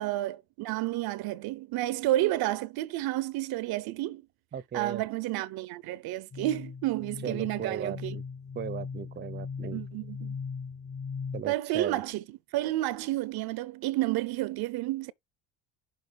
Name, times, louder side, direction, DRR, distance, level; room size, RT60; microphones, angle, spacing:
voice 1, 0.0-4.2 4.7-8.2 9.7-10.3 11.5-12.2 12.5-15.1, right 16 dB, 65° right, 0.6 m, -30 dB
voice 2, 4.5-5.0 7.2-8.2 8.6-9.8 11.3-12.0, right 9 dB, 25° right, 0.6 m, -36 dB
sound 1, 6.3-11.4, left 5 dB, 20° left, 0.5 m, -39 dB
6.4 x 3.9 x 5.0 m
supercardioid pair, 80°, 40 cm